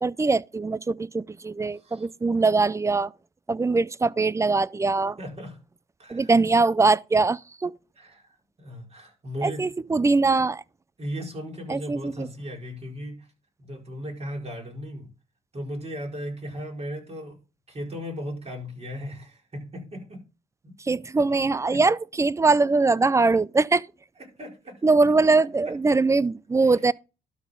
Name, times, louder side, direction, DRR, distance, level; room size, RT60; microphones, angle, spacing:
voice 1, 0.0-3.1 3.5-5.2 6.1-7.7 9.4-10.6 11.7-12.3 20.8-23.8 24.8-26.9, right 3 dB, 15° right, 0.3 m, -22 dB
voice 2, 1.7-2.1 5.2-5.6 6.0-6.3 8.0-10.0 11.0-13.3 13.6-15.1 15.5-17.4 17.7-20.2 20.6-20.8 21.2-21.8 24.2-24.8 25.6-25.7 26.6-26.9, equal, 30° right, 4.8 m, -37 dB
12.0 x 4.3 x 5.3 m
cardioid pair, 90°, 20 cm